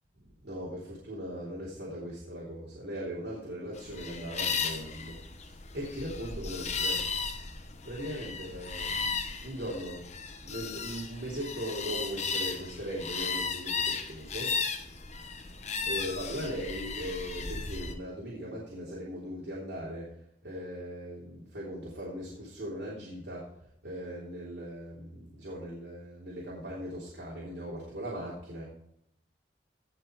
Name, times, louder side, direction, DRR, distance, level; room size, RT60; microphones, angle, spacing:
voice 1, 0.2-7.1 7.8-10.0 10.4-14.6 15.8-20.1 20.4-23.5 23.8-28.6, equal, 70° right, -6 dB, 3.3 m, -39 dB
sound 1, 3.8-17.9, left 5 dB, 40° left, 1.2 m, -35 dB
17.0 x 5.8 x 4.6 m, 0.75 s
head